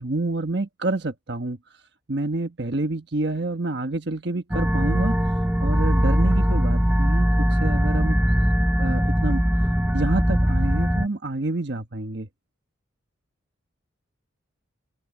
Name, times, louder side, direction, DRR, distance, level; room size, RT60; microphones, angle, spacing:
voice 1, 0.0-1.6 2.1-5.2 5.6-8.2 8.8-9.4 9.9-12.3, right 2 dB, 60° right, 1.3 m, -28 dB
sound 1, 4.5-11.1, equal, 10° right, 1.0 m, -21 dB
open air
head